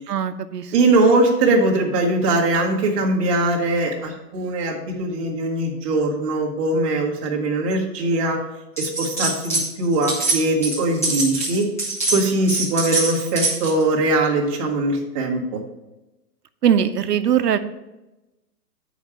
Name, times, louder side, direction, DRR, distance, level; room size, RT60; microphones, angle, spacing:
voice 1, 0.1-0.7 16.6-17.6, right 9 dB, 75° right, 10 dB, 0.8 m, -20 dB
voice 2, 0.7-8.4 8.8-11.7 12.1-15.6, right 2 dB, 20° right, -1 dB, 1.2 m, -21 dB
sound 1, 8.8-9.7 9.9-13.8, right 2 dB, 10° left, 0.5 m, -24 dB
8.2 x 5.1 x 5.6 m, 1.0 s
hypercardioid pair, 165°, 49 cm